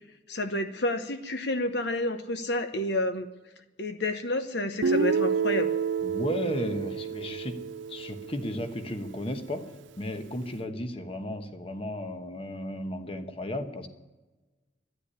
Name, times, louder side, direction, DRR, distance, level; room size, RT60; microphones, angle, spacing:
voice 1, 0.3-3.3 3.8-5.7, left 1 dB, 65° left, 8 dB, 0.9 m, -29 dB
Guitar, 4.8-8.8, right 6 dB, 85° right, 0.5 m, -29 dB
voice 2, 6.0-13.9, left 1 dB, 30° left, 7 dB, 1.1 m, -34 dB
13.0 x 10.0 x 9.9 m, 1.1 s
head